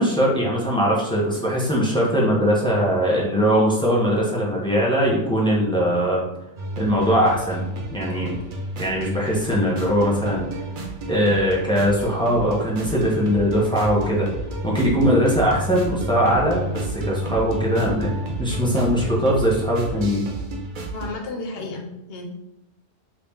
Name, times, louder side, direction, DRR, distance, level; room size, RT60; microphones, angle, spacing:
voice 1, 0.0-6.2 6.8-8.4 8.8-10.5 11.1-14.3 14.6-18.1 18.4-20.2, equal, 5° left, -5 dB, 0.7 m, -21 dB
sound 1, 6.6-21.1, right 1 dB, 55° right, 0.7 m, -31 dB
voice 2, 20.9-22.3, left 2 dB, 60° left, 1 dB, 0.9 m, -32 dB
3.0 x 2.8 x 3.5 m, 0.92 s
omnidirectional pair, 1.2 m